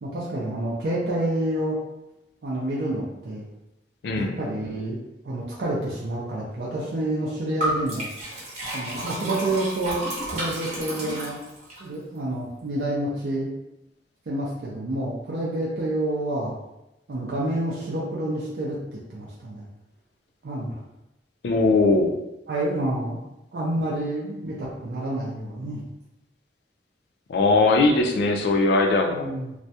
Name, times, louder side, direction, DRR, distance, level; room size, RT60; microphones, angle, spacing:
voice 1, 0.0-1.8 2.4-3.5 4.2-8.1 8.7-10.0 10.3-11.4 11.8-13.5 14.3-16.5 17.1-19.6 20.4-20.8 22.5-23.2 23.5-25.8 29.1-29.5, right 1 dB, 65° right, -5 dB, 0.4 m, -28 dB
voice 2, 4.0-4.4 21.4-22.2 27.3-29.3, left 3 dB, 65° left, 3 dB, 0.3 m, -20 dB
Liquid, 7.6-11.8, right 1 dB, 45° right, 0.8 m, -31 dB
2.3 x 2.1 x 2.7 m, 0.92 s
head